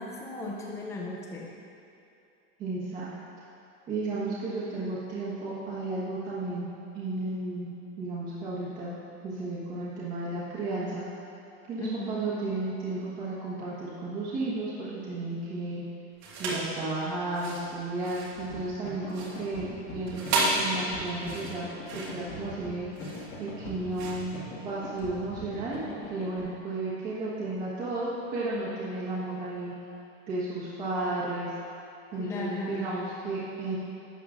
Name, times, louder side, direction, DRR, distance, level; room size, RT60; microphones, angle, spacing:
voice 1, 0.0-1.5 11.8-12.2 32.2-32.9, left 2 dB, 10° left, -2 dB, 0.4 m, -36 dB
voice 2, 2.6-3.1 3.9-6.7 6.9-7.7 8.0-8.9 9.2-11.2 11.7-15.8 16.4-22.9 23.4-25.8 26.1-29.7 30.3-31.5 32.1-33.8, right 2 dB, 25° right, -10 dB, 1.2 m, -33 dB
sound 1, 16.2-16.7 17.2-25.1, right 2 dB, 70° right, 1.7 m, -33 dB
sound 2, 18.3-26.4, left 2 dB, 40° left, 1.5 m, -42 dB
11.5 x 7.1 x 2.4 m, 2.7 s
supercardioid pair, 180°, 33 cm